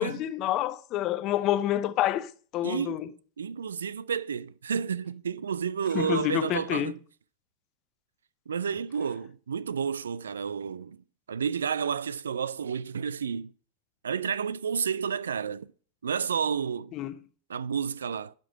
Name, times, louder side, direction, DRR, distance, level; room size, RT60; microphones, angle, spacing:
voice 1, 0.0-3.1 5.9-6.9 16.9-17.2, left 12 dB, 35° left, 0.7 m, -28 dB
voice 2, 2.6-3.0 3.4-6.9 8.5-11.0 11.3-13.5 14.0-15.7 16.0-16.9 17.5-18.3, right 7 dB, 70° right, 0.4 m, -31 dB
11.0 x 5.2 x 6.5 m
figure-of-eight pair, 90°, 0 cm